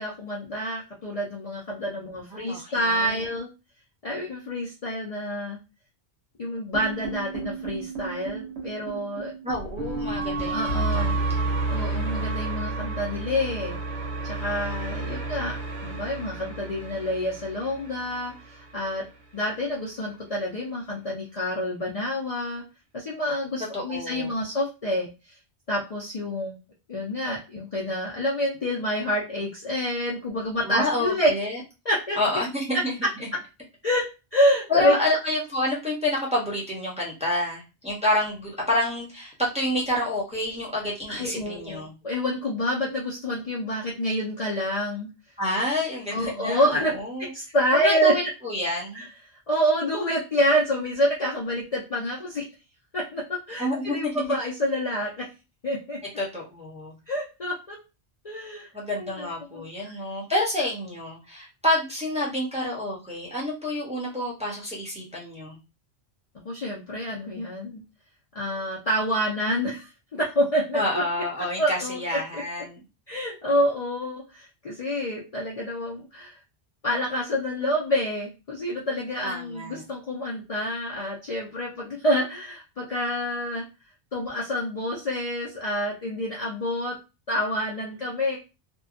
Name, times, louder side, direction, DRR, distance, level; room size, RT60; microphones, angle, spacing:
voice 1, 0.0-3.5 4.0-5.6 6.4-9.3 10.5-11.2 11.7-13.8 14.2-15.6 15.8-18.3 18.7-19.0 19.3-22.6 22.9-25.1 25.7-26.6 26.9-31.3 31.9-32.2 33.8-34.0 34.3-35.0 41.1-45.1 46.1-46.9 47.3-48.1 48.9-49.1 49.5-52.4 52.9-55.3 55.6-56.0 57.1-57.8 58.2-58.7 59.0-59.3 59.5-59.9 66.4-67.8 68.3-71.0 71.6-72.0 72.3-72.4 73.1-76.4 76.8-83.6 84.1-86.9 87.3-88.4, equal, 45° left, -4 dB, 0.6 m, -27 dB
voice 2, 2.3-3.2 9.4-11.5 23.7-24.4 30.6-31.6 32.1-33.1 34.7-41.9 45.4-47.3 47.7-49.0 53.6-54.1 56.2-56.9 58.7-65.6 70.7-72.8 79.2-79.8, left 1 dB, 5° right, -4 dB, 0.8 m, -28 dB
sound 1, 6.7-18.9, right 3 dB, 90° right, 1.2 m, -31 dB
2.7 x 2.2 x 2.4 m, 0.28 s
omnidirectional pair, 1.1 m